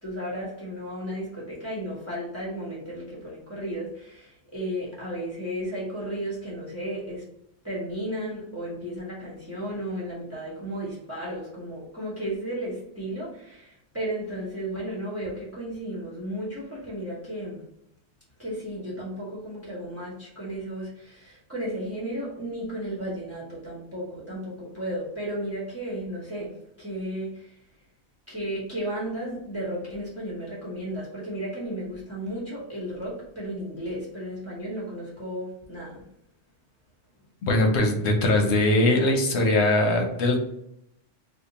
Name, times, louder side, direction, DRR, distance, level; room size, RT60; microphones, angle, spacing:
voice 1, 0.0-7.2 7.6-17.6 18.4-26.5 26.8-27.6 28.3-36.0, equal, 15° right, -6 dB, 1.1 m, -34 dB
voice 2, 37.5-40.4, left 1 dB, 75° left, 2 dB, 1.0 m, -21 dB
2.7 x 2.4 x 3.9 m, 0.78 s
omnidirectional pair, 1.2 m